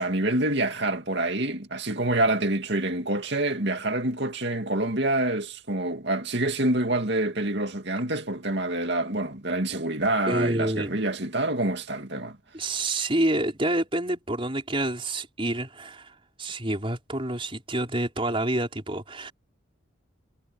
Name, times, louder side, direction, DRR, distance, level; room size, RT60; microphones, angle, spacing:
voice 1, 0.0-12.4, right 2 dB, 55° right, 2.6 m, -26 dB
voice 2, 10.3-10.9 12.5-19.3, right 1 dB, 25° right, 5.1 m, -28 dB
head